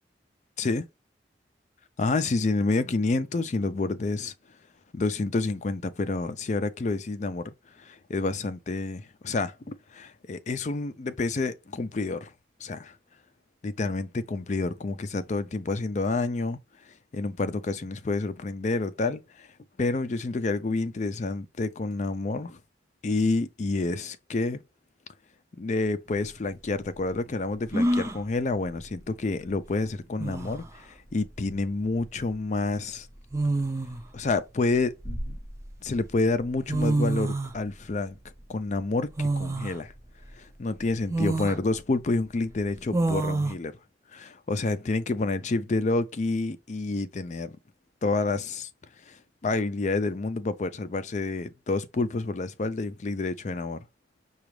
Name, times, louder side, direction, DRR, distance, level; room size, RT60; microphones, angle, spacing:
voice 1, 2.0-4.3 4.9-12.3 12.6-13.0 13.6-16.6 16.8-19.5 19.8-22.6 23.0-24.6 25.6-33.1 34.1-35.4 35.8-38.2 38.5-39.9 40.4-43.7 44.1-47.6 48.0-48.7 49.1-53.9, left 3 dB, 40° left, 0.4 m, -29 dB
sound 1, 26.1-26.2 27.7-28.2 29.7-29.8 30.2-30.7 32.0-32.2 33.3-34.1 34.7-35.7 36.4-36.5 36.7-37.6 39.2-39.8 40.3-40.4 41.1-41.6 42.9-43.5, right 2 dB, 15° right, 0.4 m, -27 dB
5.9 x 2.4 x 3.2 m
head